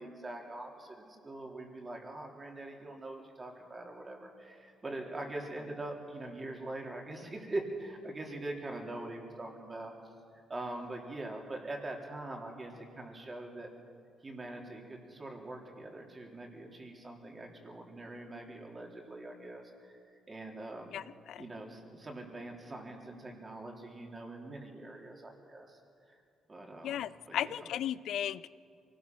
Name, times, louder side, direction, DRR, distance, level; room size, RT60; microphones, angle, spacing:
voice 1, 0.0-9.9 10.5-13.7 14.2-19.9 20.3-20.9 21.4-25.8 26.5-27.5, right 2 dB, 25° right, 1 dB, 3.5 m, -43 dB
voice 2, 20.9-21.4 26.8-28.5, left 11 dB, 75° left, 17 dB, 0.5 m, -36 dB
24.0 x 18.5 x 6.2 m, 2.3 s
cardioid pair, 90°, 0 cm